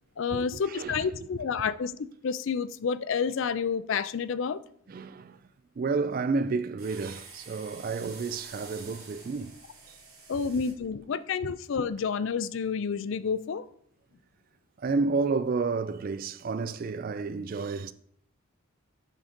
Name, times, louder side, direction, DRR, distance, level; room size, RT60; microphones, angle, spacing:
voice 1, 0.2-4.6 10.3-13.6, left 6 dB, 65° left, 0.4 m, -29 dB
voice 2, 0.7-1.0 4.9-5.4 5.8-9.5 9.9-10.0 14.8-17.9, right 4 dB, 40° right, 0.3 m, -30 dB
sound 1, 6.8-10.7, right 4 dB, 90° right, 2.4 m, -48 dB
7.5 x 3.8 x 5.1 m
head